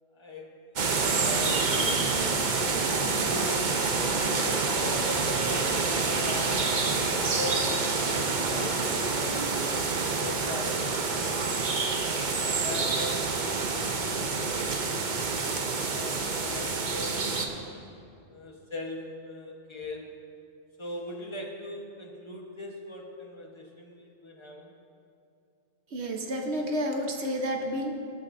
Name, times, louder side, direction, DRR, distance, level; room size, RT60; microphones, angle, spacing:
voice 1, 0.1-0.9 1.2-1.8 2.6-3.9 4.3-6.7 7.4-9.7 10.2-11.6 12.4-15.2 15.9-17.5 18.3-20.1 20.8-24.7, left 2 dB, 25° left, 0 dB, 1.3 m, -40 dB
sound 1, 0.8-17.5, right 4 dB, 45° right, 0.9 m, -27 dB
voice 2, 25.9-27.9, equal, 70° right, 2 dB, 1.4 m, -30 dB
20.0 x 8.1 x 2.7 m, 2.6 s
omnidirectional pair, 1.1 m